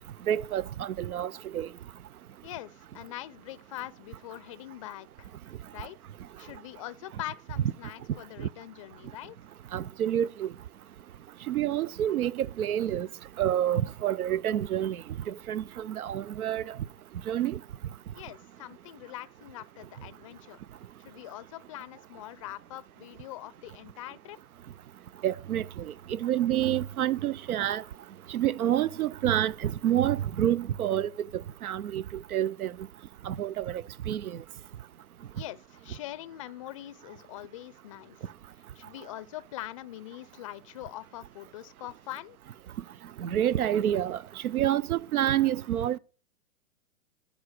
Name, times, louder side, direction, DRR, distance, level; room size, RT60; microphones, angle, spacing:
voice 1, 0.3-1.7 9.7-10.5 11.5-13.1 13.4-15.0 15.5-16.8 17.3-17.6 25.2-27.8 28.3-32.0 32.3-32.7 33.3-34.4 43.2-44.2 44.4-46.0, right 11 dB, 85° right, 0.5 m, -28 dB
voice 2, 2.4-5.3 5.7-6.0 6.4-9.4 18.1-20.6 21.0-24.4 35.3-38.3 38.8-42.4, left 15 dB, 25° left, 0.4 m, -43 dB
14.5 x 5.0 x 6.5 m
hypercardioid pair, 135°, 42 cm